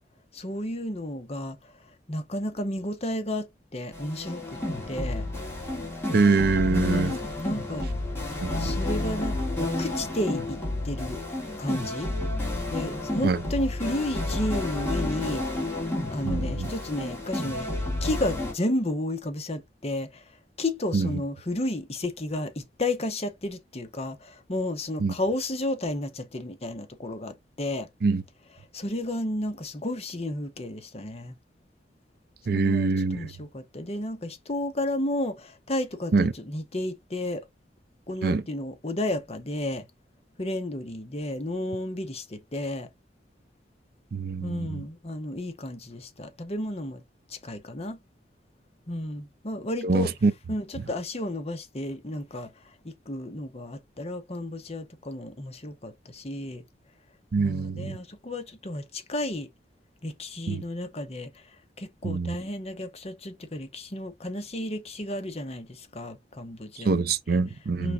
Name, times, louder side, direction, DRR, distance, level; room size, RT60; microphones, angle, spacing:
voice 1, 0.3-4.6 4.9-5.3 6.7-7.9 8.6-10.6 10.8-11.2 11.6-12.1 12.7-15.8 16.1-27.9 28.7-31.3 32.5-37.4 38.1-39.9 40.4-42.9 44.4-47.0 47.3-48.0 48.9-50.1 50.5-56.6 57.4-59.5 60.0-66.9 67.3-67.4 67.8-67.9, left 1 dB, 35° left, 0.9 m, -32 dB
sound 1, 3.9-18.5, left 1 dB, 15° left, 2.7 m, -31 dB
voice 2, 6.1-7.1 8.4-8.7 13.2-13.4 16.2-16.7 20.9-21.1 25.0-25.1 28.0-28.2 32.5-33.3 36.1-36.3 38.2-38.4 44.1-44.8 49.8-50.3 57.3-58.0 60.5-60.6 62.0-62.4 66.8-67.9, right 4 dB, 60° right, 0.5 m, -24 dB
4.9 x 3.5 x 2.5 m
head